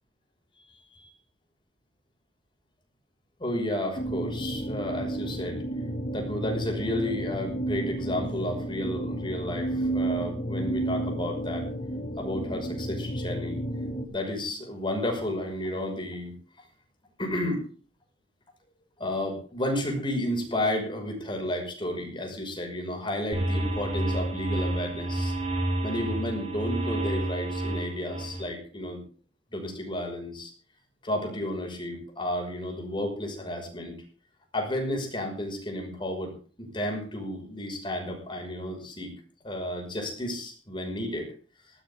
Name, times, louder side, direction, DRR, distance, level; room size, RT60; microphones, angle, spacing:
voice 1, 3.4-5.6 6.1-11.7 12.2-13.6 14.1-16.3 17.2-17.6 19.0-25.3 25.8-29.0 29.5-30.5 31.0-34.0 34.5-39.1 39.4-41.3, left 1 dB, 30° left, 2 dB, 5.8 m, -32 dB
sound 1, 4.0-14.0, right 1 dB, 50° left, 3.0 m, -32 dB
sound 2, 23.3-28.4, right 1 dB, 35° right, 7.4 m, -30 dB
19.0 x 15.5 x 3.7 m, 0.39 s
head